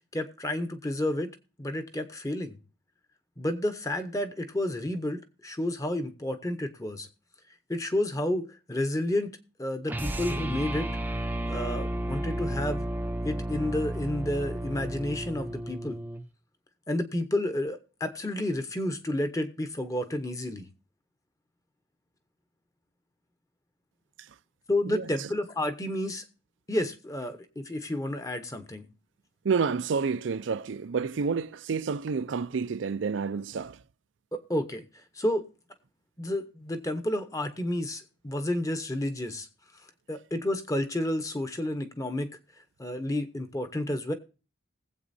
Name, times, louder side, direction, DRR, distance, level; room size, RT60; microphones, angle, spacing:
voice 1, 0.1-1.3 1.6-2.6 3.4-7.1 7.7-9.3 9.6-10.9 11.5-12.9 13.2-16.0 16.9-20.7 24.7-26.2 26.7-28.9 34.3-35.4 36.2-39.5 40.1-42.4 42.8-44.1, left 1 dB, 15° left, 0.9 m, -30 dB
sound 1, 9.9-16.3, right 1 dB, 10° right, 0.5 m, -33 dB
voice 2, 24.9-25.3 29.4-33.8, right 5 dB, 75° right, 0.4 m, -29 dB
20.0 x 8.0 x 2.7 m
head